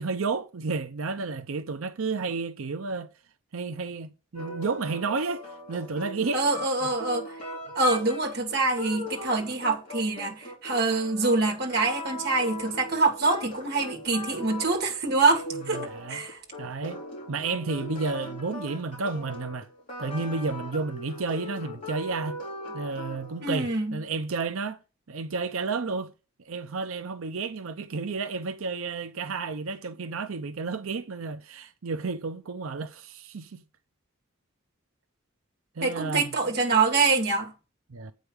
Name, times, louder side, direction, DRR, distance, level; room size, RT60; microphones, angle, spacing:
voice 1, 0.0-3.1 3.5-6.4 15.7-16.2 16.6-17.0 17.3-19.7 20.0-22.4 22.7-24.8 25.1-26.1 26.4-33.6 35.8-36.2 37.9-38.1, right 4 dB, 80° right, 0.7 m, -31 dB
sound 1, 4.3-23.5, left 1 dB, 35° left, 3.9 m, -39 dB
voice 2, 6.3-7.4 7.8-16.4 23.4-24.0 35.8-37.5, right 3 dB, 50° right, 1.9 m, -25 dB
8.0 x 5.1 x 6.4 m
head